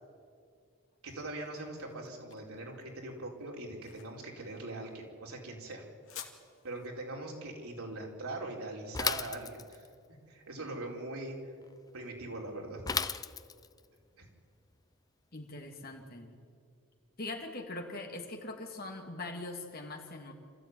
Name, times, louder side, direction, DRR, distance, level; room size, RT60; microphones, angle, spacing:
sound 1, 0.6-9.6, left 9 dB, 70° left, 2.3 m, -55 dB
voice 1, 1.0-5.9 6.6-9.9 10.3-11.4 11.9-12.8 14.2-14.3, right 2 dB, 90° right, 0 dB, 4.5 m, -41 dB
Bicycle / Mechanisms, 8.9-9.9 12.9-13.8, left 5 dB, 15° left, 0.5 m, -34 dB
voice 2, 15.3-16.3 17.2-20.3, left 2 dB, 45° left, 3 dB, 2.7 m, -42 dB
27.0 x 14.5 x 9.5 m, 2.2 s
head